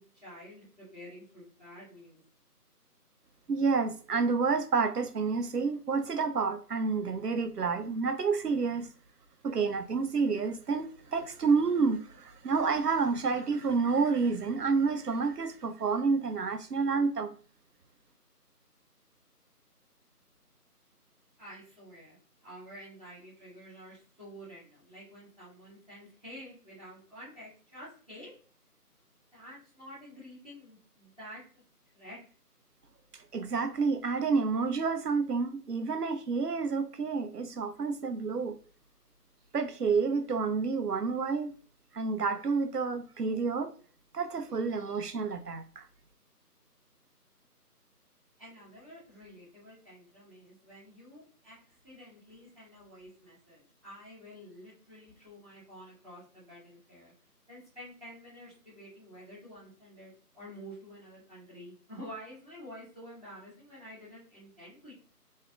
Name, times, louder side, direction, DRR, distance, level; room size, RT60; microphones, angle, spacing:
voice 1, 0.0-2.2 21.4-28.4 29.3-31.6 31.9-32.2 48.4-51.6 51.8-57.1 57.5-64.9, equal, 25° left, 1.3 m, -49 dB
voice 2, 3.5-8.9 9.4-17.4 33.3-38.6 39.5-41.5 41.9-43.7 44.1-45.8, right 4 dB, 75° right, 0.6 m, -29 dB
3.1 x 2.7 x 2.3 m
figure-of-eight pair, 165°, 48 cm